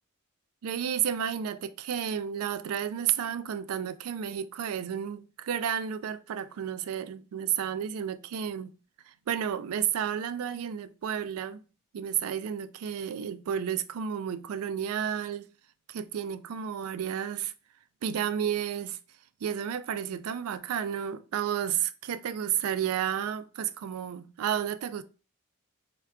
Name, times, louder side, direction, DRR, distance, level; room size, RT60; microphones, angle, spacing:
voice 1, 0.6-8.7 9.1-11.6 11.9-15.5 15.9-17.5 18.0-19.0 19.4-25.0, right 9 dB, 85° right, 0.3 m, -32 dB
4.4 x 2.2 x 2.4 m
head